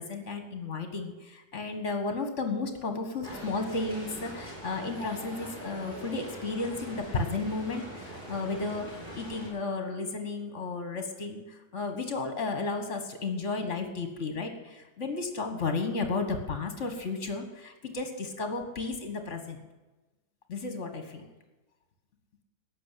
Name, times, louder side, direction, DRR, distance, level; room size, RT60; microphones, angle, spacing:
voice 1, 0.0-19.6 20.5-21.3, left 3 dB, 45° left, 6 dB, 1.8 m, -33 dB
sound 1, 3.2-9.5, right 1 dB, 25° right, 6.7 m, -42 dB
15.0 x 6.8 x 9.9 m, 1.1 s
omnidirectional pair, 1.9 m